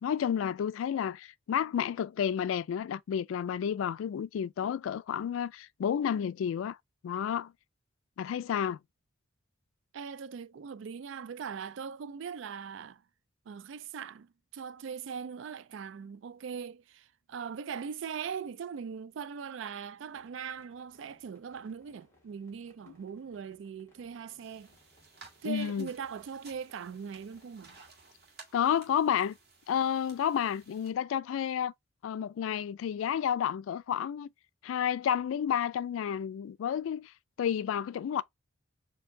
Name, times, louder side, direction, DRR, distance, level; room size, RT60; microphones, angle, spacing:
voice 1, 0.0-6.8 7.0-7.5 8.2-8.8 25.4-25.9 28.5-29.4 29.7-31.7 32.0-34.3 34.6-37.1 37.4-38.2, left 8 dB, 90° left, 0.3 m, -31 dB
voice 2, 9.9-13.0 13.5-24.7 25.4-27.8, right 6 dB, 70° right, 0.4 m, -40 dB
sound 1, 20.1-27.9, left 1 dB, 15° left, 1.6 m, -67 dB
sound 2, 24.4-30.9, right 4 dB, 55° right, 1.6 m, -56 dB
4.4 x 2.8 x 2.6 m
head